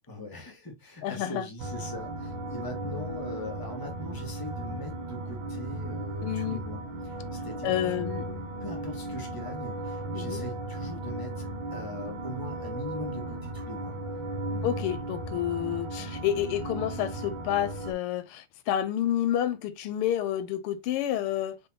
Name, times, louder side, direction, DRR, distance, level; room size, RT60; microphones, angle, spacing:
voice 1, 0.1-7.2 7.4-14.0 14.5-14.6, left 1 dB, 10° left, 1.3 m, -41 dB
voice 2, 1.0-1.5 6.2-6.6 7.6-8.2 10.1-10.4 14.6-21.6, left 11 dB, 85° left, 1.6 m, -29 dB
sound 1, 1.6-17.9, right 2 dB, 65° right, 1.8 m, -36 dB
5.3 x 3.5 x 2.8 m
omnidirectional pair, 2.4 m